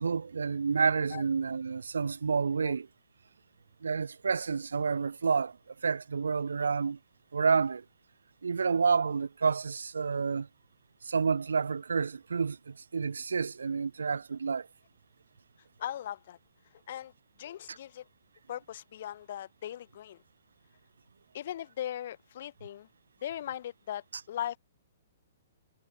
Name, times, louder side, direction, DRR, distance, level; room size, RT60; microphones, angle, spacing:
voice 1, 0.0-2.9 3.8-5.6 5.8-7.0 7.3-7.8 8.4-10.5 11.0-14.7, right 5 dB, 90° right, 3.0 m, -29 dB
voice 2, 15.8-16.4 16.7-17.1 17.4-18.1 18.5-20.2 21.3-22.9 23.2-24.6, left 11 dB, 60° left, 6.4 m, -39 dB
hypercardioid pair, 135°, 0 cm